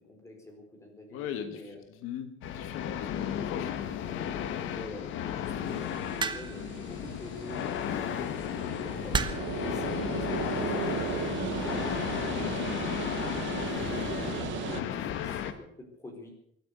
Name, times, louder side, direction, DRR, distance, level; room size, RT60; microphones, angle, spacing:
voice 1, 0.1-1.8 4.2-8.2 8.7-13.0 13.5-16.3, left 2 dB, 15° left, 2 dB, 4.6 m, -46 dB
voice 2, 1.1-4.7, left 9 dB, 85° left, 9 dB, 1.6 m, -40 dB
sound 1, 2.4-15.5, left 9 dB, 65° left, 1.5 m, -34 dB
sound 2, 5.7-14.8, right 11 dB, 65° right, 1.1 m, -37 dB
sound 3, 6.2-6.7 7.9-8.2 9.1-9.6 10.6-10.9, right 5 dB, 20° right, 1.0 m, -31 dB
23.0 x 9.1 x 6.9 m, 0.71 s
cardioid pair, 160°, 21 cm